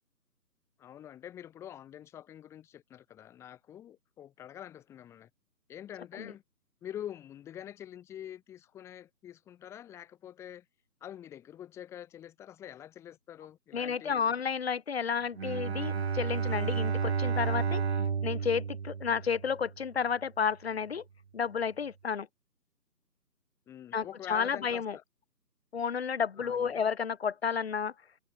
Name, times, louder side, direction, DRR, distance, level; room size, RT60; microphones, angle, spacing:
voice 1, 0.8-5.3 5.7-6.4 6.8-10.7 11.0-14.3 23.7-25.0 26.4-26.8, left 10 dB, 5° left, 2.3 m, -46 dB
voice 2, 13.7-17.8 18.2-21.0 21.3-22.3 23.9-25.0 25.7-27.9, left 6 dB, 40° left, 3.0 m, -31 dB
Bowed string instrument, 15.4-19.7, right 6 dB, 40° right, 2.7 m, -31 dB
figure-of-eight pair, 155°, 49 cm